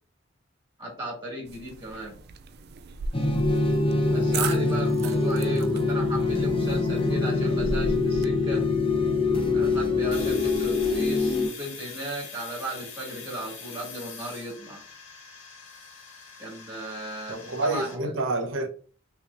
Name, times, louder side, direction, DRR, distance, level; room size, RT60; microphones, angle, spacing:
voice 1, 0.8-2.2 4.1-8.7 9.5-14.8 16.4-18.1, right 1 dB, 25° right, 2.1 m, -36 dB
sound 1, 1.5-8.2, right 4 dB, 50° right, 0.4 m, -37 dB
sound 2, 3.1-11.5, left 3 dB, 25° left, 0.7 m, -24 dB
Domestic sounds home sounds, 10.1-17.9, left 5 dB, 70° left, 1.7 m, -43 dB
voice 2, 17.3-18.7, right 2 dB, 70° right, 1.0 m, -28 dB
5.7 x 3.0 x 2.5 m
head